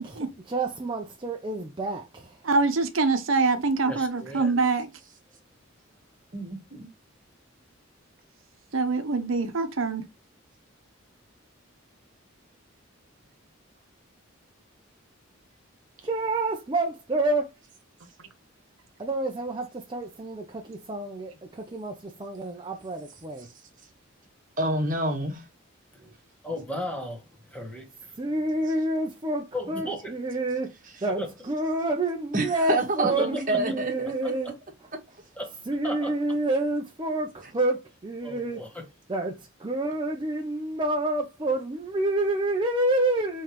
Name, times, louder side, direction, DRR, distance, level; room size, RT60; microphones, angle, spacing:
voice 1, 0.0-2.4 16.0-17.5 19.0-23.5 28.2-30.7 31.0-34.5 35.7-38.6 39.1-43.4, right 2 dB, 25° right, 0.6 m, -28 dB
voice 2, 2.4-4.9 8.7-10.0, right 3 dB, 80° right, 0.8 m, -24 dB
voice 3, 3.8-4.5 25.9-26.1 26.4-28.1 29.5-30.2 31.1-31.3 33.0-33.6 34.2-34.3 35.3-35.6 35.8-36.1 38.2-38.8, left 1 dB, 5° left, 1.3 m, -35 dB
voice 4, 6.3-6.9 24.6-25.4 30.9-31.0 32.3-33.9 34.4-34.5, right 2 dB, 40° right, 1.3 m, -27 dB
5.5 x 3.2 x 2.9 m
head